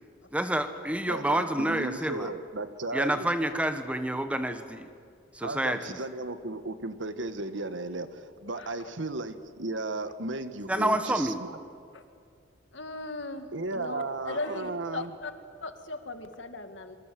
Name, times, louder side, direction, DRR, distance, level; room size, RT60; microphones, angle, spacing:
voice 1, 0.3-2.3 2.9-4.9 5.3-6.0 10.7-11.4, right 1 dB, 5° right, 8 dB, 1.4 m, -28 dB
voice 2, 1.1-3.3 5.4-11.6 13.5-15.1, right 2 dB, 85° right, 10 dB, 1.5 m, -35 dB
voice 3, 8.6-8.9 11.9-12.0 12.7-13.5 13.7-15.3 15.6-17.0, left 2 dB, 80° left, 8 dB, 2.1 m, -38 dB
27.0 x 24.5 x 7.7 m, 2.3 s
head